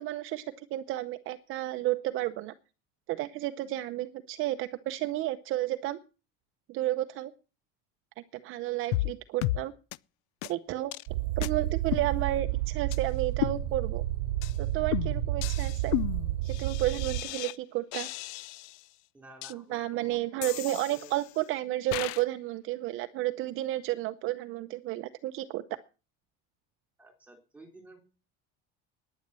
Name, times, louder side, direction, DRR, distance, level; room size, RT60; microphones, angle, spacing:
voice 1, 0.0-2.5 3.1-6.0 6.7-7.3 8.4-9.7 10.5-10.9 11.4-14.0 14.6-15.9 16.4-18.1 19.5-25.6, right 15 dB, 45° right, 10 dB, 0.7 m, -32 dB
sound 1, 8.9-9.1 9.4-9.6 9.9-10.0 10.4-10.5 10.9-11.1 11.4-11.5 11.9-12.6 12.9-13.0 13.4-14.0 14.4-14.6 14.9-17.6 17.9-18.8 19.4-19.5 20.4-21.4 21.9-22.2, left 18 dB, 90° left, 0.6 m, -34 dB
sound 2, 11.1-17.2, right 15 dB, 80° right, 1.1 m, -31 dB
voice 2, 19.1-21.1 27.0-28.0, right 2 dB, 5° right, 5 dB, 3.6 m, -52 dB
10.5 x 10.0 x 7.5 m, 0.34 s
cardioid pair, 165°, 29 cm